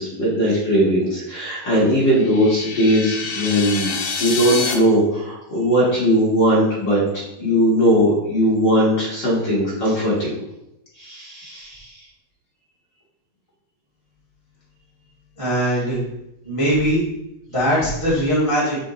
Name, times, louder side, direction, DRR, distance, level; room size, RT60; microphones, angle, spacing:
voice 1, 0.0-10.4 11.0-11.9, equal, 40° left, -7 dB, 1.9 m, -19 dB
sound 1, 2.0-4.7, left 4 dB, 70° left, 2.3 m, -27 dB
voice 2, 15.4-16.0 16.4-17.0 17.5-18.8, equal, 15° right, -9 dB, 1.0 m, -20 dB
5.0 x 4.8 x 4.1 m, 0.86 s
omnidirectional pair, 3.8 m